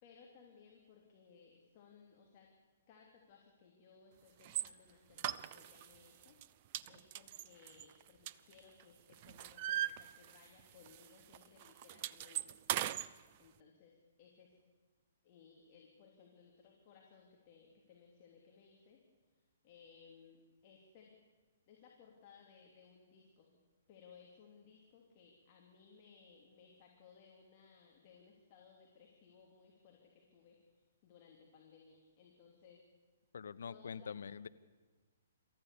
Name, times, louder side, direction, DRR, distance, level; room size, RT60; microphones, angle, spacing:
voice 1, 0.0-2.5 2.9-12.6 13.4-14.7 15.2-19.0 19.6-21.1 21.7-23.6 23.9-32.8 33.7-34.1, left 6 dB, 35° left, -1 dB, 3.1 m, -62 dB
sound 1, 4.4-4.7 5.2-5.9 6.2-6.5 6.7-8.8 9.1-10.6 10.9-11.1 11.3-13.1, right 12 dB, 35° right, 0.6 m, -39 dB
voice 2, 33.3-34.5, left 6 dB, 60° left, 13 dB, 0.7 m, -45 dB
27.5 x 14.0 x 7.1 m, 1.3 s
figure-of-eight pair, 120°, 0 cm